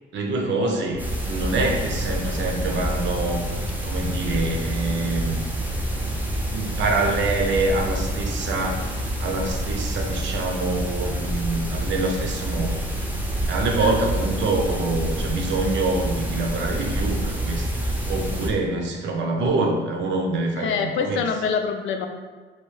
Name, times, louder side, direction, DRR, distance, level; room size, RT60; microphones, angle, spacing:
voice 1, 0.1-3.4 3.8-5.4 6.0-6.2 6.5-12.7 13.5-21.3, right 2 dB, 65° right, 1 dB, 0.6 m, -26 dB
sound 1, 1.0-18.5, right 1 dB, 10° right, 0.6 m, -27 dB
voice 2, 20.6-22.1, left 6 dB, 80° left, 5 dB, 0.4 m, -25 dB
3.1 x 2.6 x 3.2 m, 1.3 s
cardioid pair, 90°, 20 cm